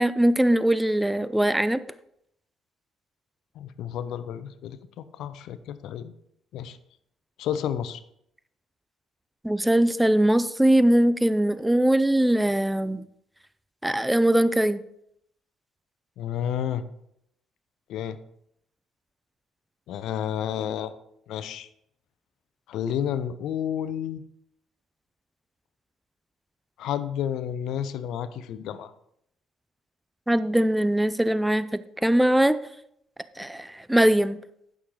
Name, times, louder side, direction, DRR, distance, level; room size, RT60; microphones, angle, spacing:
voice 1, 0.0-1.8 9.4-13.0 13.8-14.8 30.3-31.7 32.0-32.6 33.4-34.4, right 1 dB, 5° right, 14 dB, 0.5 m, -21 dB
voice 2, 3.6-6.1 6.5-6.8 7.4-8.0 16.2-16.8 17.9-18.2 19.9-20.9 21.3-21.7 22.7-24.2 26.8-28.9, left 9 dB, 70° left, 13 dB, 0.6 m, -31 dB
11.5 x 6.4 x 3.8 m, 0.74 s
supercardioid pair, 65°, 0 cm